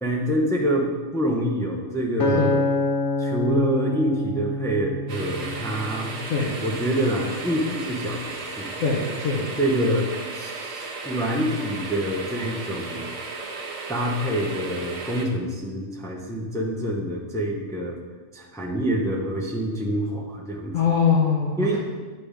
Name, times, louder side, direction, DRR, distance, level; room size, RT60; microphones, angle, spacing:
voice 1, 0.0-2.5 3.2-6.1 6.6-8.7 9.6-13.1 13.9-18.0 18.3-20.7 21.6-21.8, equal, 5° left, -1 dB, 0.7 m, -26 dB
Acoustic guitar, 2.2-6.5 7.1-7.4, left 2 dB, 50° left, 0.8 m, -27 dB
sound 1, 5.1-15.3, right 3 dB, 85° right, 1.3 m, -35 dB
voice 2, 8.8-9.4 20.7-21.8, left 5 dB, 80° left, -4 dB, 1.3 m, -22 dB
9.8 x 3.4 x 5.0 m, 1.3 s
omnidirectional pair, 1.3 m